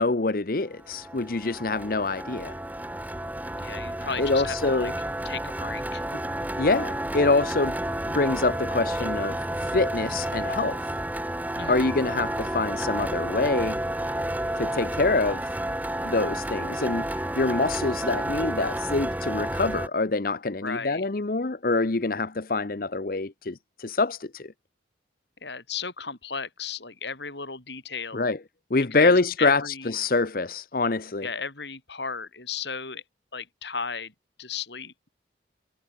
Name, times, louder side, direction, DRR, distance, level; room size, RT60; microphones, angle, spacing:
voice 1, 0.0-2.6 4.2-4.9 6.6-7.8 8.0-11.0 11.7-13.8 14.6-15.6 16.0-24.5 28.1-28.4 28.7-31.3, left 3 dB, 50° left, 0.8 m, -25 dB
sound 1, 0.8-19.9, right 1 dB, 10° right, 1.8 m, -31 dB
voice 2, 3.6-4.9 5.2-6.2 11.6-11.9 20.6-21.0 25.4-28.3 28.9-29.9 31.2-33.0 33.3-34.1 34.4-35.1, left 5 dB, 70° left, 4.9 m, -35 dB
head